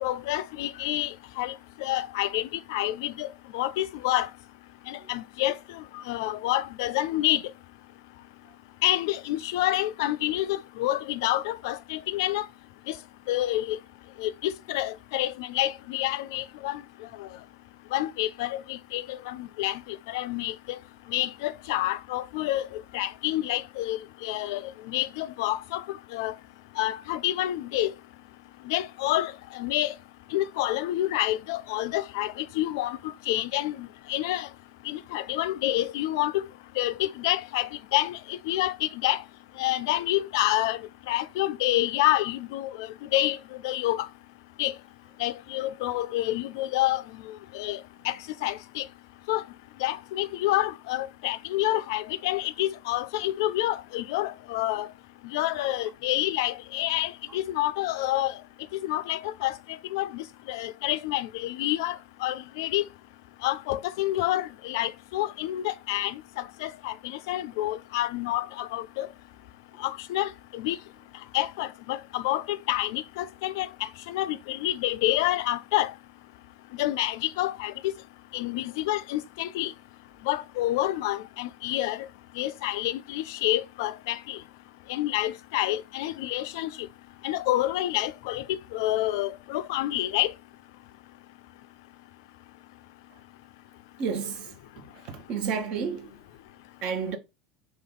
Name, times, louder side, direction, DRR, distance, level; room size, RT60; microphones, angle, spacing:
voice 1, 0.0-4.3 4.9-7.4 8.8-12.5 12.9-13.0 13.3-13.8 14.2-16.8 17.2-17.3 17.9-20.8 21.1-25.8 26.1-26.4 26.8-27.9 28.6-29.9 30.3-34.5 34.8-36.4 36.8-39.2 39.6-44.1 44.6-44.7 45.2-48.9 49.3-49.4 49.8-54.9 55.2-58.4 58.7-62.9 63.4-69.1 69.8-70.8 71.3-75.9 76.7-77.7 78.3-79.7 80.2-82.1 82.4-84.4 84.9-86.9 87.2-90.3, left 15 dB, 65° left, 0.3 m, -28 dB
voice 2, 94.0-94.5 95.1-96.1 96.8-97.2, right 6 dB, 50° right, 0.8 m, -30 dB
3.0 x 2.8 x 3.7 m
hypercardioid pair, 75°, 2 cm